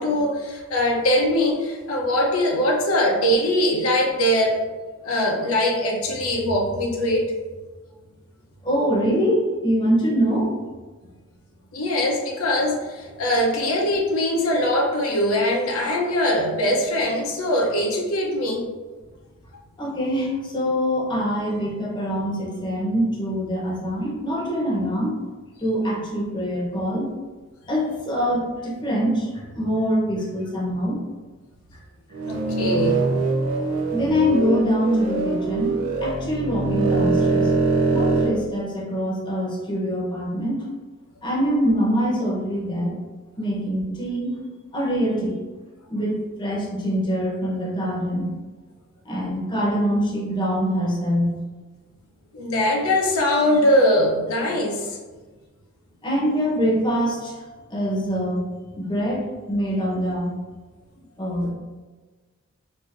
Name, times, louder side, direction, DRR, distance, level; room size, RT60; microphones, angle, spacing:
voice 1, 0.0-4.6 5.0-7.3 11.7-18.7 32.3-33.1 52.3-55.0, left 1 dB, 80° left, -1 dB, 0.6 m, -22 dB
voice 2, 8.6-10.5 19.8-25.2 25.6-27.1 27.7-31.0 33.9-37.5 37.9-40.7 41.2-43.0 43.4-44.4 44.7-45.4 45.9-48.3 49.0-51.3 56.0-57.4 57.7-58.4 58.7-60.3 61.2-61.5, equal, 20° left, -5 dB, 0.7 m, -24 dB
sound 1, 32.1-38.3, right 3 dB, 85° right, 0.6 m, -23 dB
4.2 x 2.5 x 2.5 m, 1.3 s
head